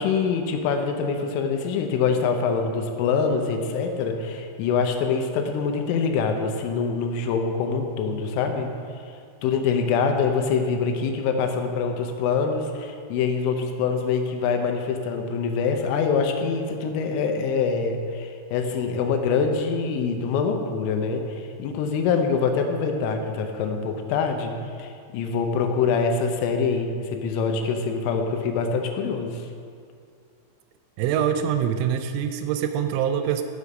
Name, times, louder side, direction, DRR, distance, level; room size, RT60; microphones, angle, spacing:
voice 1, 0.0-8.7 9.4-29.5, left 5 dB, 85° left, 4 dB, 3.3 m, -25 dB
voice 2, 31.0-33.4, right 9 dB, 85° right, 8 dB, 2.9 m, -24 dB
7.1 x 6.8 x 6.3 m, 2.2 s
omnidirectional pair, 5.7 m